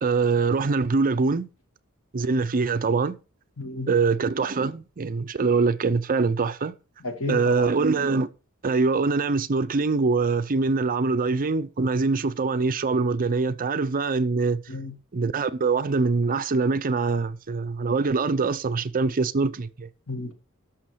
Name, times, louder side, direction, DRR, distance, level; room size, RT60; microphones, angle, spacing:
voice 1, 0.0-1.5 2.1-3.2 3.9-6.7 7.3-8.3 8.6-14.6 15.1-19.9, right 4 dB, 40° right, 0.5 m, -23 dB
voice 2, 3.6-3.9 7.0-7.7 14.7-14.9 20.1-20.3, left 2 dB, 65° left, 1.7 m, -31 dB
12.0 x 6.3 x 4.7 m
head